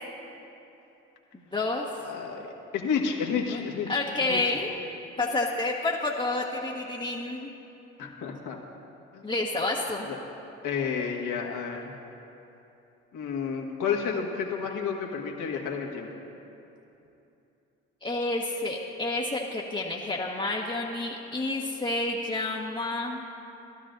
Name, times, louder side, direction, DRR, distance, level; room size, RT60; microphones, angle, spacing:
voice 1, 1.3-1.8 3.5-3.6 3.9-4.7 5.2-7.5 8.0-8.3 9.2-10.1 18.0-23.2, left 2 dB, 15° left, -4 dB, 1.2 m, -29 dB
voice 2, 2.0-2.5 2.7-4.4 8.0-8.6 9.1-9.2 10.0-10.2 10.6-11.9 13.1-16.1, left 6 dB, 65° left, 0 dB, 1.7 m, -31 dB
18.5 x 12.5 x 2.6 m, 2.9 s
hypercardioid pair, 60°, 33 cm